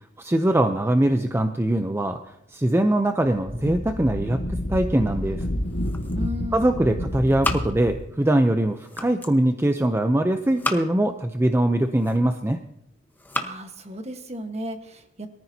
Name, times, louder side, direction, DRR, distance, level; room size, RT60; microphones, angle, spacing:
voice 1, 0.2-5.5 6.5-12.6, right 1 dB, 15° right, 7 dB, 0.5 m, -22 dB
Wind, 3.4-8.1, left 1 dB, 75° left, 1.8 m, -29 dB
sound 1, 5.6-6.5 6.8-8.2 8.6-9.4 10.3-11.2 11.7-12.5 13.0-13.6, left 2 dB, 10° left, 1.0 m, -33 dB
voice 2, 6.1-6.8 13.4-15.3, left 1 dB, 35° right, 6 dB, 1.3 m, -35 dB
23.0 x 14.0 x 2.8 m, 0.83 s
head